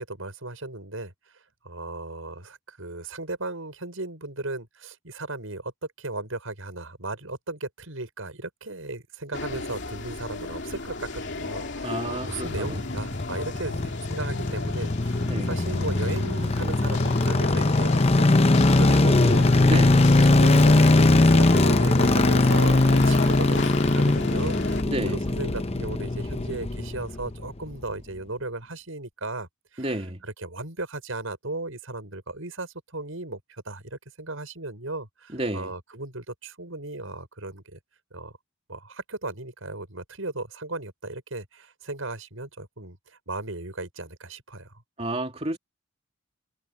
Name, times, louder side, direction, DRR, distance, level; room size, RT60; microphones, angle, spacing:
voice 1, 0.0-1.4 1.6-5.7 6.0-19.5 20.2-29.9 30.2-37.8 38.1-38.3 38.7-44.7, right 2 dB, 85° right, 6.2 m, -36 dB
sound 1, 9.3-24.8, left 3 dB, 60° left, 3.0 m, -34 dB
voice 2, 11.8-12.8 15.2-15.6 19.6-20.1 24.8-25.2 29.8-30.2 35.3-35.7 45.0-45.6, right 1 dB, 30° right, 2.7 m, -30 dB
sound 2, 12.2-27.5 27.7-27.8, left 2 dB, 30° left, 0.8 m, -21 dB
head